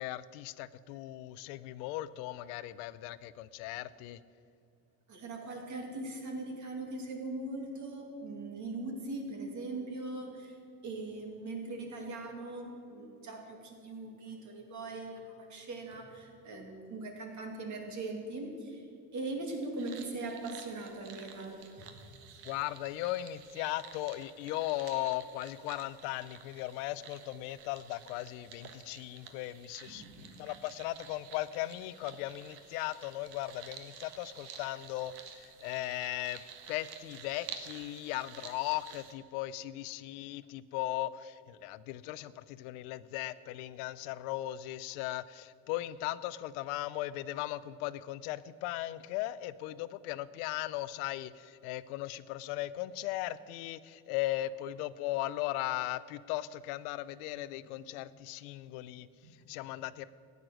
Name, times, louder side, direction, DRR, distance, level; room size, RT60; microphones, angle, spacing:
voice 1, 0.0-4.2 22.4-36.4 36.7-59.1 59.5-60.1, left 15 dB, 90° left, 16 dB, 0.6 m, -37 dB
voice 2, 5.1-10.6 10.8-18.9 19.1-22.0 22.3-22.4 29.9-30.4 57.4-57.5 59.2-59.3, right 2 dB, 45° right, 2 dB, 2.5 m, -40 dB
sound 1, 19.8-39.1, right 7 dB, 65° right, 1.4 m, -51 dB
13.5 x 9.6 x 6.3 m, 2.5 s
cardioid pair, 130°, 42 cm